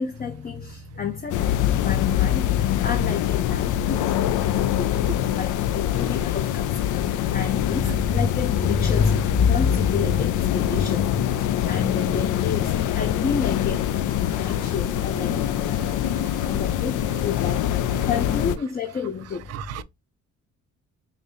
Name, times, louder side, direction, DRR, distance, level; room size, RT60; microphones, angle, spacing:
voice 1, 0.0-5.0 5.3-15.9 16.4-17.7 18.1-19.8, left 6 dB, 30° left, 0.5 m, -28 dB
sound 1, 1.3-18.6, left 11 dB, 85° left, 0.4 m, -24 dB
voice 2, 14.2-14.5 15.9-16.5 18.0-18.1 19.5-19.8, right 13 dB, 55° right, 0.4 m, -39 dB
5.1 x 2.7 x 2.6 m
cardioid pair, 90°, 30 cm